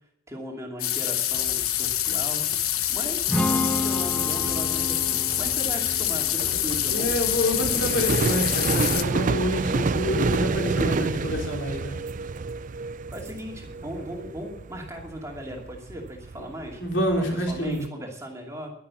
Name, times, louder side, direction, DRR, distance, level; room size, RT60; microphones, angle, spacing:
voice 1, 0.3-2.4 2.9-7.1 13.1-16.8 17.2-18.7, equal, 15° right, 0 dB, 2.6 m, -37 dB
sound 1, 0.8-9.0, left 12 dB, 85° left, 1.1 m, -26 dB
sound 2, 1.3-17.9, right 4 dB, 40° right, 0.4 m, -31 dB
Strum, 3.3-9.5, left 1 dB, 5° left, 1.1 m, -32 dB
voice 2, 6.9-12.0 16.8-17.9, equal, 55° left, 1 dB, 4.1 m, -27 dB
11.5 x 11.5 x 7.0 m, 0.76 s
head